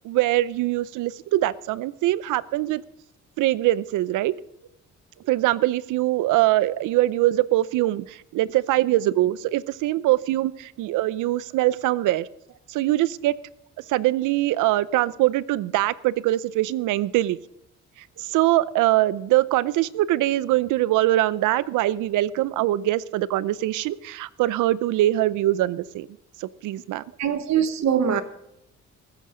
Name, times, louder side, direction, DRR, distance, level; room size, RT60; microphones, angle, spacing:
voice 1, 0.0-2.8 3.4-4.3 5.3-12.3 12.7-13.3 13.9-17.4 18.2-26.1 26.4-27.0, right 15 dB, 90° right, 0.6 m, -23 dB
voice 2, 27.2-28.2, right 8 dB, 65° right, 1.2 m, -22 dB
19.5 x 10.0 x 5.0 m
cardioid pair, 90°, 30 cm